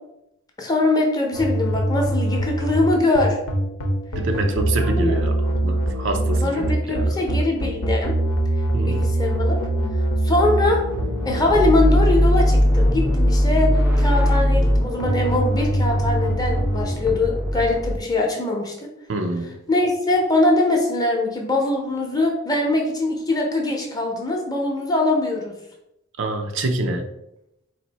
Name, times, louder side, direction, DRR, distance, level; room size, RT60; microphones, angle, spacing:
voice 1, 0.6-3.4 4.8-5.1 6.4-8.1 8.8-9.6 10.2-10.8 11.2-13.7 14.0-18.9 19.7-25.5, left 2 dB, 20° left, 0 dB, 0.8 m, -22 dB
sound 1, 1.3-17.1, equal, 80° left, 0.8 m, -21 dB
voice 2, 4.2-7.2 8.7-9.1 19.1-19.5 26.2-27.1, right 2 dB, 60° right, 5 dB, 0.5 m, -26 dB
sound 2, 10.9-18.0, equal, 10° right, 0.4 m, -30 dB
4.2 x 2.6 x 4.1 m, 0.83 s
head